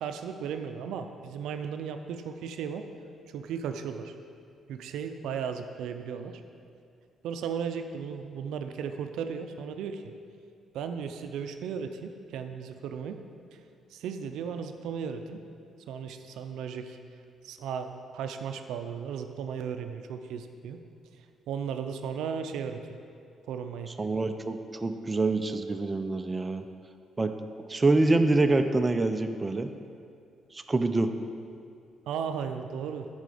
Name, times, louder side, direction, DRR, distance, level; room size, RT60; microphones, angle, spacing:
voice 1, 0.0-2.8 3.3-4.1 4.7-6.4 7.2-10.0 10.7-13.2 13.9-15.4 15.9-17.0 17.4-20.8 21.5-22.8 23.5-23.9 32.1-33.1, right 7 dB, 85° right, 7 dB, 0.5 m, -35 dB
voice 2, 24.0-26.6 27.2-27.3 27.7-29.7 30.5-31.1, right 2 dB, 25° right, 7 dB, 0.5 m, -26 dB
9.0 x 5.6 x 5.0 m, 2.4 s
cardioid pair, 90°, 0 cm